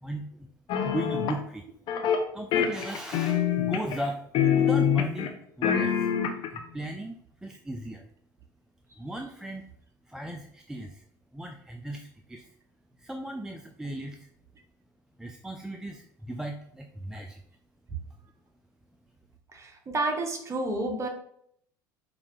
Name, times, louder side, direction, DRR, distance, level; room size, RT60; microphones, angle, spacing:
sound 1, 0.7-1.4 1.9-2.2 2.5-4.1 4.3-5.3 5.6-6.6, left 8 dB, 50° left, 0.6 m, -25 dB
voice 1, 0.8-1.6 2.3-4.2 4.5-6.1 6.5-8.0 9.0-9.7 10.1-11.0 11.3-12.5 13.0-14.3 15.2-17.4, right 1 dB, 5° right, 3 dB, 0.3 m, -37 dB
voice 2, 19.5-21.1, right 2 dB, 25° right, 2 dB, 1.0 m, -30 dB
4.9 x 2.5 x 3.1 m, 0.69 s
hypercardioid pair, 70°, 11 cm